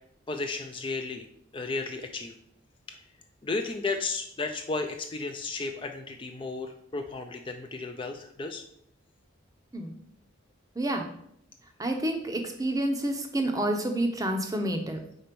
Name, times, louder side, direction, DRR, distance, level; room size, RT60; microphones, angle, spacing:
voice 1, 0.3-1.2 1.5-2.3 3.4-8.6, left 3 dB, 25° left, 5 dB, 0.4 m, -33 dB
voice 2, 10.8-11.1 11.8-15.0, right 1 dB, 15° right, 5 dB, 0.6 m, -29 dB
4.4 x 4.3 x 5.1 m, 0.70 s
head